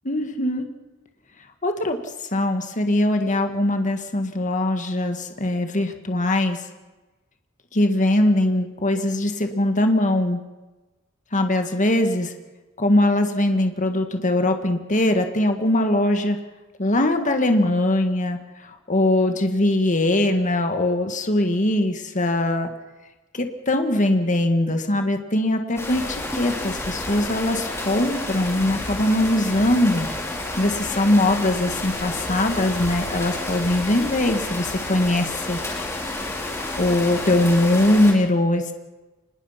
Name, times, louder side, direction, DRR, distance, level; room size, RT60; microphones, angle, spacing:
voice 1, 0.0-0.7 1.6-2.0 2.3-6.6 7.7-10.4 11.3-12.3 12.8-16.4 16.8-22.7 23.3-30.1 30.6-35.6 36.8-38.7, left 1 dB, 35° left, 6 dB, 1.8 m, -21 dB
sound 1, 25.8-38.1, left 2 dB, 15° left, 4.1 m, -30 dB
26.0 x 20.5 x 5.8 m, 1.2 s
head